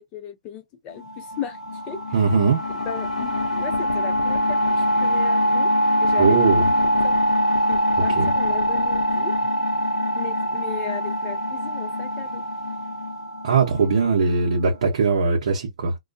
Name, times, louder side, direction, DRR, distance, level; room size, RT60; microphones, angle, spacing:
voice 1, 0.0-1.6 1.9-2.0 2.9-5.7 6.0-7.2 7.6-9.3 10.1-12.4, left 8 dB, 30° left, 0.7 m, -36 dB
sound 1, 1.0-14.5, equal, 75° left, 0.8 m, -23 dB
voice 2, 2.1-2.7 6.2-6.6 8.1-8.3 13.4-16.0, right 5 dB, 65° right, 0.8 m, -20 dB
2.3 x 2.2 x 2.5 m
hypercardioid pair, 125°, 4 cm